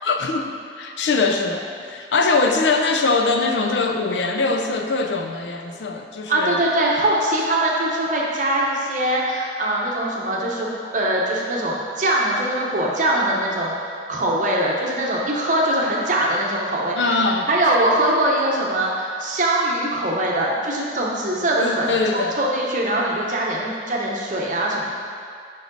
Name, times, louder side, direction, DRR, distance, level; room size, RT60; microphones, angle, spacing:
voice 1, 0.0-6.6 17.0-17.5 21.6-22.4, left 3 dB, 80° left, 4 dB, 0.5 m, -22 dB
voice 2, 6.3-10.7 10.9-24.9, right 1 dB, 45° right, -3 dB, 0.9 m, -22 dB
5.5 x 5.1 x 3.8 m, 2.2 s
head